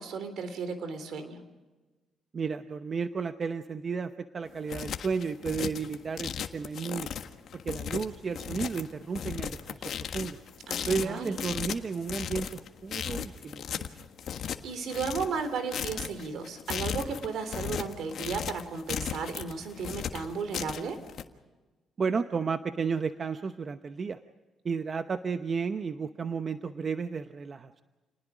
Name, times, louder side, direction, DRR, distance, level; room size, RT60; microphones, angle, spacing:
voice 1, 0.0-1.4 10.7-11.4 14.4-21.0, right 5 dB, 70° right, 10 dB, 3.6 m, -34 dB
voice 2, 2.3-7.1 7.6-9.8 10.1-10.4 10.9-13.9 22.0-24.2 24.6-27.7, right 5 dB, 40° right, 9 dB, 0.9 m, -33 dB
sound 1, 4.4-21.2, left 8 dB, 65° left, 1.5 m, -36 dB
29.0 x 19.5 x 5.1 m, 1.2 s
cardioid pair, 90°, 0 cm